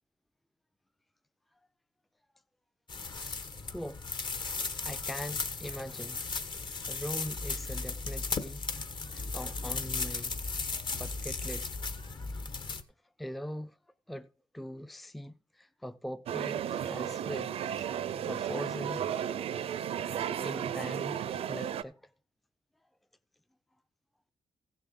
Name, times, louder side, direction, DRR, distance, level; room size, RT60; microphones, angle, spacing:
sound 1, 2.9-12.8, left 4 dB, 50° left, 1.3 m, -36 dB
voice 1, 4.5-6.2 6.9-8.7 9.1-10.4 10.9-11.7 13.2-13.8 14.1-17.9 18.3-19.1 20.3-21.2 21.5-22.1, equal, ahead, 0.4 m, -42 dB
sound 2, 16.3-21.8, right 9 dB, 75° right, 0.5 m, -34 dB
15.5 x 6.9 x 3.8 m
cardioid pair, 80°, 10 cm